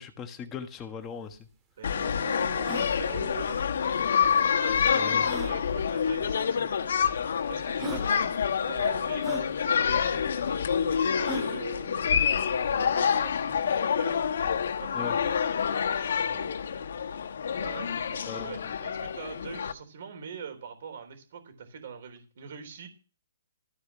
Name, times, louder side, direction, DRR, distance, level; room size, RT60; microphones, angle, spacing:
voice 1, 0.0-1.5 4.9-5.3 7.7-8.2 14.9-15.2 18.3-18.7, left 6 dB, 15° left, 6 dB, 1.4 m, -40 dB
sound 1, 1.0-1.1 1.3-1.4 1.9-2.0 2.5-2.9 4.2-4.3 5.2-5.5 6.5-6.6 7.4-7.5 7.8-8.1 9.2-9.5 11.2-11.6, right 3 dB, 15° right, 2.0 m, -38 dB
sound 2, 1.8-19.7, left 7 dB, 65° left, 1.1 m, -27 dB
voice 2, 1.8-3.6 4.4-6.7 7.5-8.3 8.7-14.2 14.7-16.5 17.6-22.9, right 6 dB, 55° right, 7 dB, 3.8 m, -43 dB
14.5 x 5.0 x 8.6 m, 0.34 s
hypercardioid pair, 155°, 0 cm